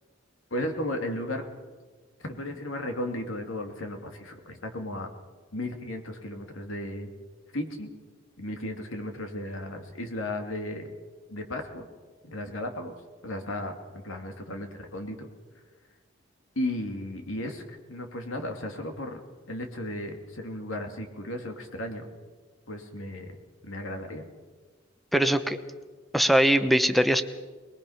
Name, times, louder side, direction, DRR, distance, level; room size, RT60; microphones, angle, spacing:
voice 1, 0.5-1.5 2.2-5.1 5.5-7.1 7.5-7.9 8.4-10.9 11.3-11.9 12.2-12.9 13.2-15.3 16.6-19.2 19.5-22.0 22.7-23.3 23.6-24.3, left 1 dB, 90° left, 4 dB, 2.5 m, -35 dB
voice 2, 25.1-25.6 26.1-27.2, equal, ahead, 10 dB, 0.9 m, -21 dB
21.5 x 21.0 x 5.8 m, 1.4 s
head